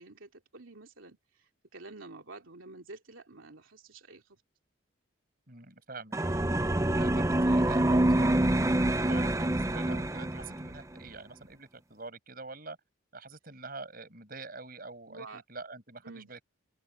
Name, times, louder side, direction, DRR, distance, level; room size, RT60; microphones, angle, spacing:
voice 1, 0.0-4.4 15.1-15.4 16.0-16.3, right 3 dB, 80° right, 2.8 m, -49 dB
voice 2, 5.5-12.8 13.1-16.4, right 3 dB, 45° right, 6.9 m, -45 dB
sound 1, 6.1-10.8, right 1 dB, 15° right, 0.6 m, -26 dB
open air
head